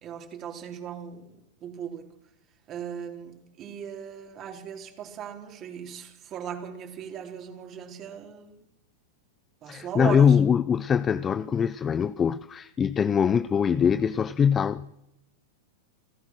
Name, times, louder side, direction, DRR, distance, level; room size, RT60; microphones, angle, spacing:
voice 1, 0.0-1.3 1.6-2.1 2.7-8.6 9.6-10.4, right 8 dB, 35° right, 4.1 m, -38 dB
voice 2, 9.7-14.9, left 7 dB, 25° left, 0.7 m, -23 dB
29.5 x 15.5 x 6.2 m
hypercardioid pair, 100°, 0 cm